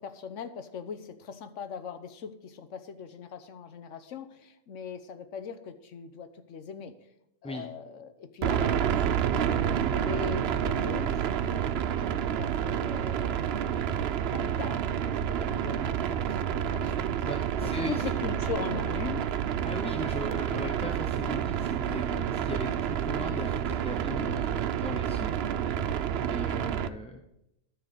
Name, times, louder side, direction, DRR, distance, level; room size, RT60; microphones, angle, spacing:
voice 1, 0.0-6.9 7.4-13.5 14.3-14.8 15.0-17.3 17.6-19.2, left 6 dB, 80° left, 10 dB, 1.2 m, -40 dB
sound 1, 8.4-26.9, right 9 dB, 65° right, 0.7 m, -29 dB
voice 2, 17.2-18.0 19.6-25.3 26.2-27.2, left 1 dB, 5° left, 2 dB, 0.6 m, -38 dB
13.5 x 4.6 x 6.6 m, 0.82 s
omnidirectional pair, 1.3 m